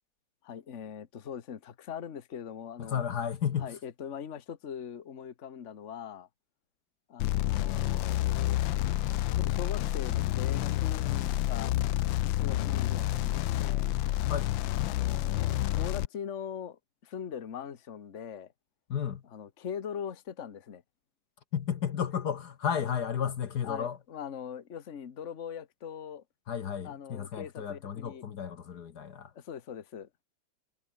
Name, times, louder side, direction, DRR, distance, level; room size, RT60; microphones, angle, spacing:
voice 1, 0.4-3.0 3.6-6.3 7.1-8.6 9.3-11.7 12.3-13.9 14.8-18.5 19.3-20.8 23.6-26.2 26.8-28.2 29.3-30.1, left 8 dB, 40° left, 1.5 m, -41 dB
voice 2, 2.8-3.7 14.3-14.5 18.9-19.2 21.5-24.0 26.5-29.3, left 8 dB, 60° left, 1.7 m, -33 dB
sound 1, 7.2-16.1, left 15 dB, 85° left, 1.5 m, -29 dB
omnidirectional pair, 2.0 m